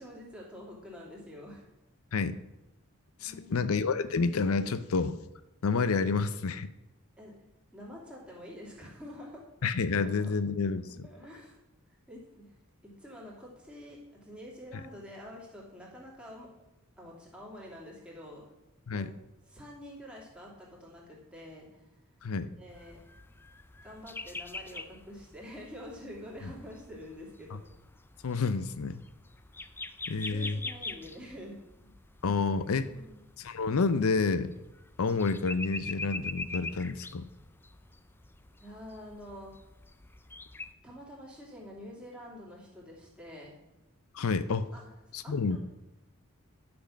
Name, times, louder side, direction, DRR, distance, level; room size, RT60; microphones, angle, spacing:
voice 1, 0.0-1.7 3.3-3.7 7.2-7.3 7.7-9.4 10.0-10.3 11.0-11.6 11.9-12.5 12.8-16.5 17.0-18.4 18.9-19.1 19.5-21.8 22.6-23.0 23.8-27.6 30.2-31.9 32.8-33.2 38.6-39.5 40.8-43.6 44.7-44.9 45.2-45.6, left 1 dB, 5° right, -4 dB, 2.9 m, -47 dB
voice 2, 3.2-5.2 5.6-6.7 9.6-11.1 18.9-19.1 22.2-22.5 28.2-29.0 30.1-30.6 32.2-32.9 33.4-34.5 35.0-37.3 44.1-44.7 45.1-45.6, left 4 dB, 80° left, 13 dB, 0.5 m, -29 dB
sound 1, 22.7-40.7, left 3 dB, 10° left, 0.4 m, -44 dB
11.5 x 6.1 x 6.2 m, 0.94 s
head